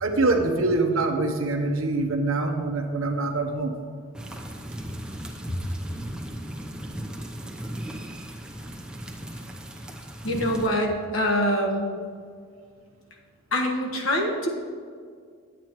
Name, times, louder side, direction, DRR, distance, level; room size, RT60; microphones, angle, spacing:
voice 1, 0.0-3.7, right 2 dB, 85° right, 5 dB, 1.0 m, -24 dB
sound 1, 4.1-10.7, right 1 dB, 5° right, 0.7 m, -37 dB
voice 2, 10.2-11.9 13.5-14.5, equal, 75° left, 0 dB, 1.4 m, -24 dB
10.0 x 9.0 x 3.1 m, 2.1 s
head